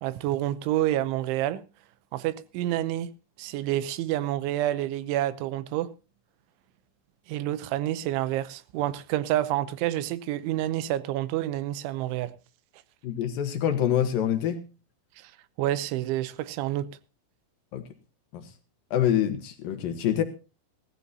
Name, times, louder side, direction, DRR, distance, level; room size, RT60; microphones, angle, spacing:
voice 1, 0.0-1.6 2.1-3.1 3.4-5.9 7.3-12.3 15.2-15.3 15.6-16.9, right 13 dB, 80° right, 3.1 m, -28 dB
voice 2, 13.0-14.6 17.7-17.8 18.3-18.5 18.9-20.2, left 10 dB, 70° left, 2.3 m, -26 dB
18.0 x 14.5 x 2.8 m
omnidirectional pair, 5.6 m